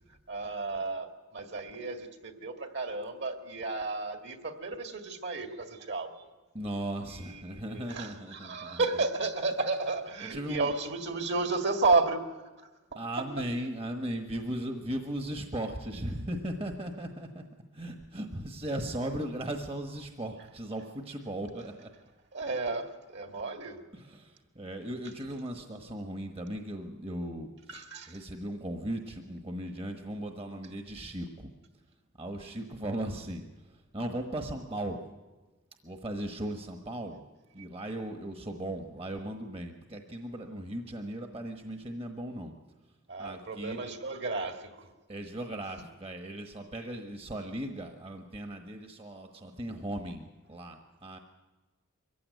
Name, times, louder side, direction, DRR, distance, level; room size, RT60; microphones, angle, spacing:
voice 1, 0.3-6.2 7.1-12.7 13.4-13.5 21.6-21.7 22.3-23.8 27.7-28.2 37.6-37.7 43.1-44.9, right 3 dB, 55° right, 6 dB, 2.0 m, -32 dB
voice 2, 6.5-8.8 10.2-10.7 13.0-17.4 17.7-21.9 23.9-27.8 28.1-31.5 32.2-33.4 33.9-35.0 35.8-37.2 37.5-42.5 43.2-43.8 45.1-51.2, right 1 dB, 25° right, 5 dB, 1.2 m, -37 dB
23.0 x 15.5 x 9.4 m, 1.2 s
head